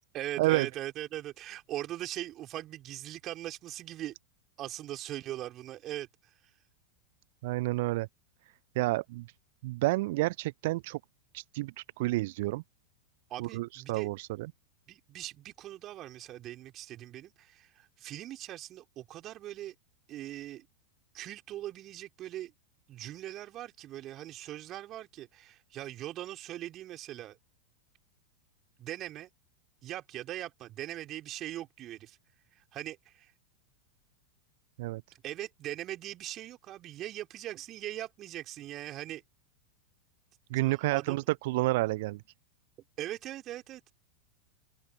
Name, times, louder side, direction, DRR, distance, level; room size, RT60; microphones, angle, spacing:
voice 1, 0.0-4.1 4.6-6.1 13.3-14.1 14.9-19.7 20.1-20.7 21.1-22.5 22.9-27.4 28.8-29.3 29.8-32.2 32.7-33.3 35.2-39.2 40.6-41.2 43.0-43.8, right 13 dB, 35° right, 4.5 m, -40 dB
voice 2, 7.4-8.1 8.8-9.3 9.6-11.0 11.3-12.6 13.4-14.5 34.8-35.0 40.5-42.2, right 20 dB, 50° right, 0.4 m, -30 dB
open air
figure-of-eight pair, 90°, 0 cm